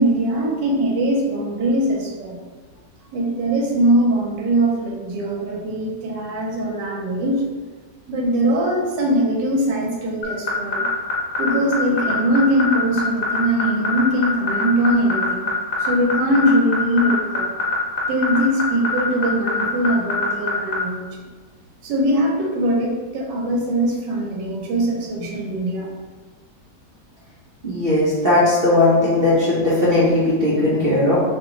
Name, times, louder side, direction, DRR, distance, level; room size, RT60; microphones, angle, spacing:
voice 1, 0.0-2.4 3.1-7.4 8.1-10.9 11.4-15.5 15.8-17.5 18.1-21.2 21.8-25.9, right 1 dB, 80° right, -2 dB, 1.4 m, -21 dB
sound 1, 10.2-20.8, left 2 dB, 55° left, 1.2 m, -23 dB
voice 2, 27.6-31.2, left 2 dB, 45° right, -9 dB, 0.7 m, -17 dB
3.2 x 2.9 x 3.7 m, 1.3 s
omnidirectional pair, 1.9 m